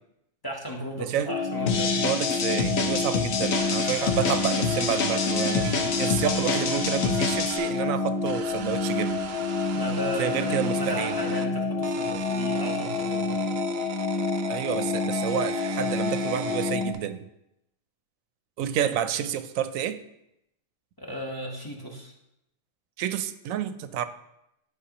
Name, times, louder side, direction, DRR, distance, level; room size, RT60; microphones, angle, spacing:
voice 1, 0.4-1.9 9.7-13.4 21.0-22.1, equal, 20° left, -1 dB, 1.0 m, -34 dB
voice 2, 1.0-1.3 2.0-9.3 10.2-11.2 14.5-17.3 18.6-20.0 23.0-24.1, right 10 dB, 85° right, 12 dB, 1.0 m, -29 dB
sound 1, 1.3-16.9, left 4 dB, 50° left, 1.0 m, -28 dB
sound 2, 1.7-7.6, left 5 dB, 85° left, 1.2 m, -28 dB
sound 3, 3.5-7.8 8.2-11.5 11.8-17.0, right 7 dB, 60° right, 0.7 m, -39 dB
11.5 x 5.3 x 2.9 m, 0.84 s
omnidirectional pair, 1.4 m